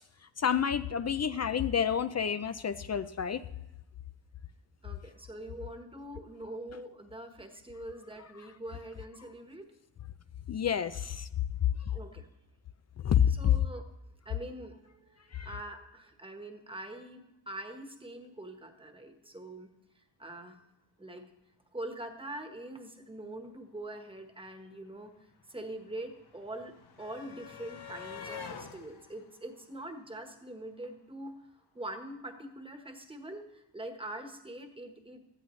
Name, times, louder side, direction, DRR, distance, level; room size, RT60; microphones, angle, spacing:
voice 1, 0.4-3.5 6.7-6.8 10.5-11.3 11.6-12.0 13.0-13.6 15.3-15.5, left 8 dB, 40° left, 13 dB, 0.4 m, -29 dB
voice 2, 4.8-9.7 11.9-12.3 13.4-13.8 14.2-19.7 20.2-20.6 21.0-21.2 21.7-25.1 25.5-26.7 27.0-31.4 31.7-35.3, right 1 dB, 10° right, 5 dB, 1.3 m, -43 dB
sound 1, 24.2-24.3 24.4-30.6 31.8-31.9 32.2-32.4, left 6 dB, 60° left, 1.2 m, -48 dB
17.0 x 12.5 x 3.2 m, 0.90 s
wide cardioid pair, 135°, 45 cm